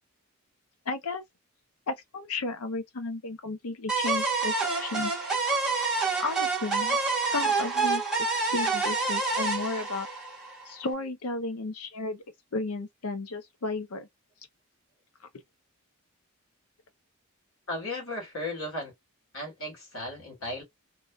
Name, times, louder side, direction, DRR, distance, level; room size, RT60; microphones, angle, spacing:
voice 1, 0.9-1.2 1.9-5.1 6.2-7.0 7.3-10.1 10.7-12.2 12.5-14.1, left 3 dB, 80° left, 0.7 m, -33 dB
sound 1, 3.9-10.8, right 4 dB, 5° right, 0.9 m, -28 dB
voice 2, 17.7-18.9 19.3-20.6, left 1 dB, 65° left, 2.1 m, -35 dB
3.1 x 2.4 x 2.2 m
head